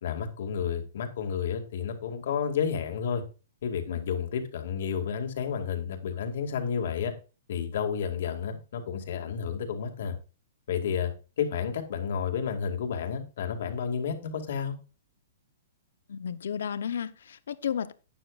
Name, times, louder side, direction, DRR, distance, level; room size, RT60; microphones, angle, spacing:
voice 1, 0.0-3.2 3.6-7.1 7.5-10.2 10.7-11.1 11.4-14.8, left 7 dB, 65° left, 2.3 m, -31 dB
voice 2, 16.1-17.9, left 8 dB, 80° left, 0.8 m, -33 dB
12.5 x 9.4 x 2.5 m
hypercardioid pair, 160°, 0 cm